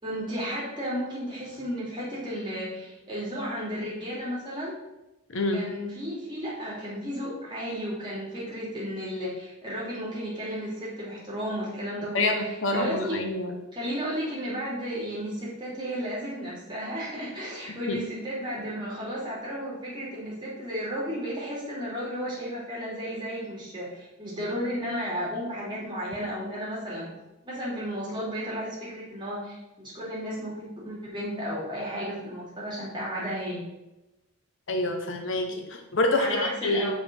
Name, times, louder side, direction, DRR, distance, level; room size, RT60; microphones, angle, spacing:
voice 1, 0.0-4.7 5.5-13.2 13.7-27.1 27.4-29.6 29.9-33.6 36.1-36.9, equal, 20° right, -6 dB, 3.0 m, -33 dB
voice 2, 5.3-5.6 12.1-13.6 17.9-18.0 34.7-36.9, left 2 dB, 55° left, 5 dB, 0.9 m, -27 dB
6.5 x 5.1 x 6.2 m, 0.99 s
head